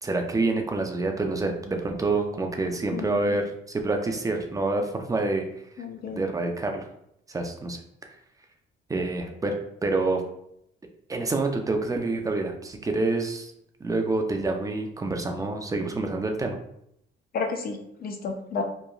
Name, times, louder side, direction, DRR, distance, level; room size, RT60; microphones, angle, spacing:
voice 1, 0.0-5.4 6.1-6.9 7.3-7.8 8.9-9.5 9.8-10.2 11.1-13.5 13.8-16.6, right 3 dB, 15° right, 4 dB, 0.4 m, -27 dB
voice 2, 2.9-3.4 5.8-6.2 17.3-18.6, left 4 dB, 50° left, 4 dB, 0.5 m, -32 dB
2.9 x 2.2 x 2.3 m, 0.76 s
cardioid pair, 90°, 20 cm